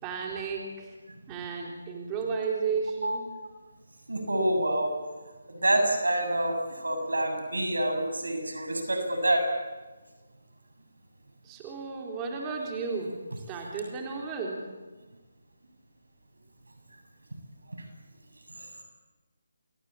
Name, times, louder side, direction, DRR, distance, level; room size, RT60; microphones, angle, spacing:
voice 1, 0.0-0.9 1.3-3.3 11.4-14.7, right 5 dB, 20° right, 0 dB, 4.0 m, -33 dB
voice 2, 4.1-5.0 5.5-9.4 17.7-17.8 18.6-18.7, right 1 dB, 85° right, 5 dB, 7.4 m, -27 dB
28.5 x 22.5 x 8.7 m, 1.2 s
figure-of-eight pair, 155°, 0 cm